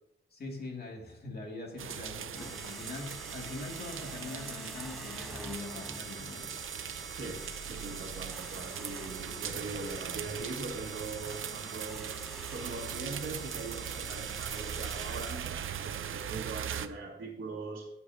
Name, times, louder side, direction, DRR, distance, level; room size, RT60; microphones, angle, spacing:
voice 1, 0.3-6.5, left 2 dB, 50° left, 0 dB, 2.5 m, -43 dB
sound 1, 1.8-16.9, right 9 dB, 85° right, 0.6 m, -40 dB
sound 2, 2.4-15.8, equal, ahead, 0.5 m, -47 dB
voice 2, 7.1-12.1 12.5-17.9, right 3 dB, 70° right, -5 dB, 2.0 m, -41 dB
18.0 x 7.1 x 2.8 m, 0.81 s
wide cardioid pair, 155°, 20 cm